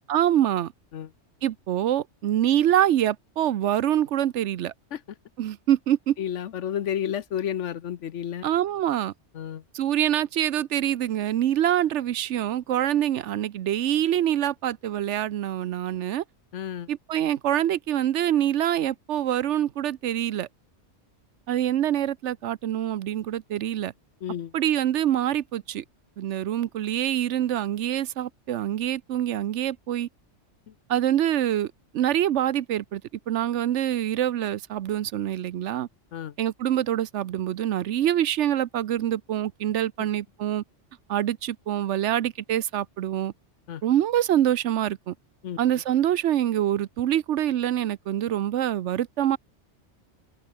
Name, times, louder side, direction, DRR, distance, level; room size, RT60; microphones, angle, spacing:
voice 1, 0.1-0.7 1.4-4.7 5.4-6.2 8.4-9.1 9.7-16.2 16.9-20.5 21.5-23.9 24.5-25.8 26.2-30.1 30.9-33.0 33.3-35.9 36.4-40.6 41.1-43.3 43.8-45.1 45.6-49.4, right 11 dB, 75° right, 1.0 m, -25 dB
voice 2, 6.2-8.4 9.3-9.6 16.5-16.9 24.2-24.5 30.7-30.8 36.1-36.3 40.0-40.1 43.7-43.8 45.4-45.6, left 9 dB, 80° left, 1.2 m, -31 dB
open air
omnidirectional pair, 1.2 m